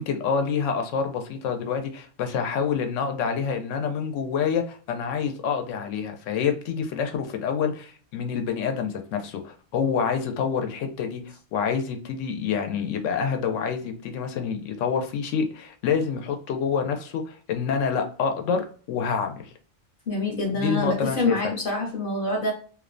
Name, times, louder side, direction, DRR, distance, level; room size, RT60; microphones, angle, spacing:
voice 1, 0.0-19.4 20.6-21.5, left 6 dB, 85° left, 5 dB, 0.9 m, -27 dB
voice 2, 20.1-22.5, left 2 dB, 50° left, -1 dB, 0.8 m, -26 dB
2.6 x 2.1 x 2.5 m, 0.42 s
omnidirectional pair, 1.3 m